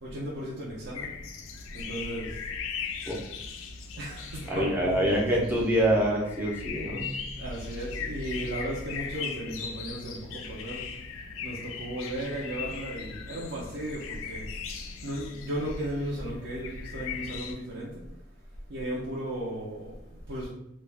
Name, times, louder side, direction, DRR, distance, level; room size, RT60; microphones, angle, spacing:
voice 1, 0.0-1.1 1.7-2.4 3.9-5.5 7.3-10.9 11.4-14.5 15.0-18.0 18.7-20.5, right 1 dB, 60° right, -6 dB, 0.5 m, -35 dB
sound 1, 0.9-17.5, left 5 dB, 85° left, 0.4 m, -39 dB
voice 2, 4.5-7.1, right 1 dB, 10° right, -4 dB, 0.5 m, -25 dB
2.3 x 2.1 x 3.3 m, 0.83 s
head